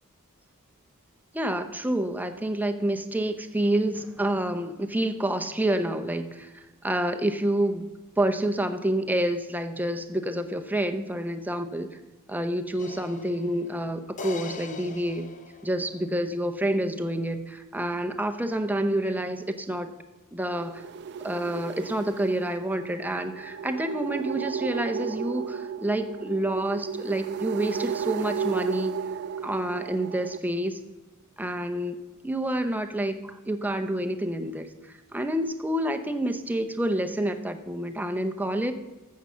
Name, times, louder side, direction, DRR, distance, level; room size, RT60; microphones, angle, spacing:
voice 1, 1.3-7.9 8.2-11.9 12.3-15.3 15.6-19.9 20.3-20.8 21.2-28.9 29.4-30.8 31.4-32.0 32.2-38.7, right 1 dB, 10° right, 7 dB, 0.7 m, -28 dB
sound 1, 12.8-16.2, left 4 dB, 35° left, 0.8 m, -42 dB
sound 2, 20.5-30.4, right 7 dB, 50° right, 0.3 m, -34 dB
13.5 x 7.5 x 5.6 m, 1.2 s
head